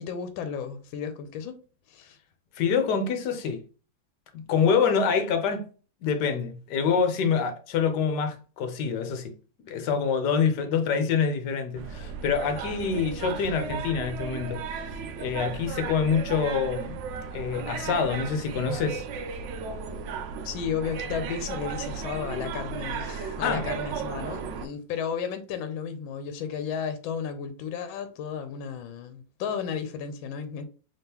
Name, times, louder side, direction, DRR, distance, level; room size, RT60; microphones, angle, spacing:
voice 1, 0.0-1.6 1.9-2.2 20.4-30.6, left 7 dB, 85° left, 1.3 m, -33 dB
voice 2, 2.5-3.6 4.3-5.7 6.0-9.3 9.6-14.9 15.2-17.0 17.3-19.0 23.4-23.7, left 6 dB, 65° left, 1.2 m, -26 dB
sound 1, 11.7-24.7, right 6 dB, 75° right, 1.2 m, -35 dB
3.6 x 3.5 x 2.8 m
omnidirectional pair, 2.1 m